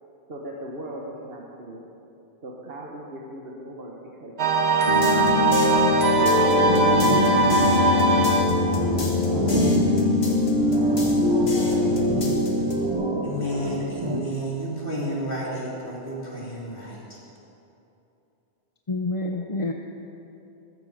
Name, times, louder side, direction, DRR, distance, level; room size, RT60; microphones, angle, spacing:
voice 1, 0.3-1.9 2.4-5.5 6.3-9.4, right 1 dB, 65° right, -2 dB, 1.8 m, -40 dB
sound 1, 4.4-8.7, right 3 dB, 85° right, 1.6 m, -21 dB
sound 2, 4.9-12.9, left 3 dB, 75° left, 2.2 m, -22 dB
sound 3, 6.2-14.2, right 3 dB, 30° right, 0.8 m, -29 dB
voice 2, 13.2-17.2, equal, 55° left, -5 dB, 4.0 m, -31 dB
voice 3, 18.9-19.7, left 2 dB, 35° left, 2 dB, 0.8 m, -27 dB
20.0 x 14.0 x 5.1 m, 2.9 s
omnidirectional pair, 1.1 m